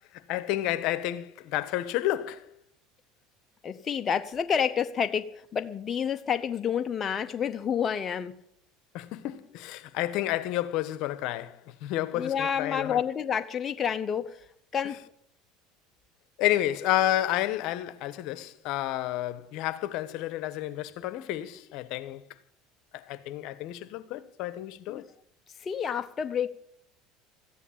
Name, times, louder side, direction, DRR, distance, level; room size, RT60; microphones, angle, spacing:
voice 1, 0.3-2.5 8.9-13.0 16.4-22.2 22.9-25.0, left 14 dB, 65° left, 1.1 m, -30 dB
voice 2, 3.6-8.4 12.1-14.4 14.7-15.0 24.9-25.0 25.6-26.5, left 7 dB, 30° left, 0.8 m, -29 dB
14.5 x 10.0 x 8.6 m
supercardioid pair, 120°, 0 cm